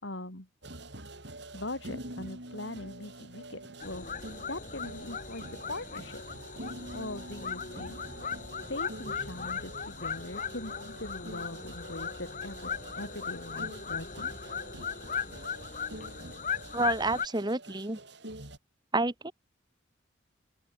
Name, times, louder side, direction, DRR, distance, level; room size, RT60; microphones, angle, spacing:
voice 1, 0.0-0.5 1.5-4.1 4.5-6.2 6.9-8.0 8.3-8.4 8.7-14.3, left 1 dB, 70° left, 5.3 m, -41 dB
sound 1, 0.6-18.6, right 1 dB, 60° right, 6.6 m, -46 dB
sound 2, 3.8-17.3, left 6 dB, 40° left, 4.7 m, -38 dB
voice 2, 16.7-18.0 18.9-19.3, right 2 dB, 20° right, 1.8 m, -29 dB
open air
head